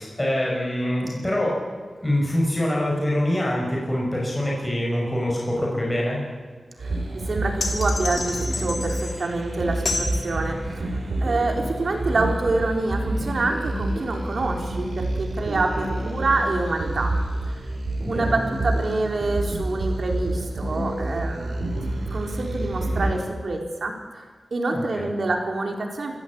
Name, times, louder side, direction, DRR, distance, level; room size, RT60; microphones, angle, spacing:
voice 1, 0.0-1.6 2.0-6.2 18.0-18.3 24.7-25.1, left 1 dB, 15° left, -3 dB, 6.4 m, -25 dB
voice 2, 6.8-10.9 11.2-17.1 17.5-17.6 18.1-24.2 24.5-26.2, right 2 dB, 65° right, 2 dB, 4.1 m, -27 dB
sound 1, 6.8-23.1, right 1 dB, 85° right, 5.2 m, -28 dB
sound 2, 7.6-9.3 9.9-10.2, left 3 dB, 65° left, 3.4 m, -29 dB
27.0 x 15.5 x 8.8 m, 1.5 s
wide cardioid pair, 105°, 0 cm